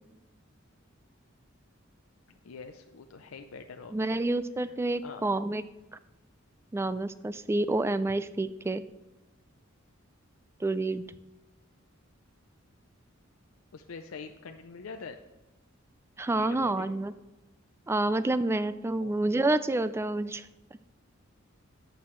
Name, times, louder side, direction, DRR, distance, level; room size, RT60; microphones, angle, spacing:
voice 1, 2.4-4.2 4.6-4.7 5.0-5.3 13.7-15.2 16.3-16.9 19.0-19.4, left 5 dB, 85° left, 6 dB, 0.5 m, -44 dB
voice 2, 3.9-5.6 6.7-8.8 10.6-11.0 16.2-17.1 17.9-20.5, right 2 dB, 10° right, 14 dB, 0.3 m, -28 dB
11.5 x 8.0 x 3.1 m, 1.0 s
head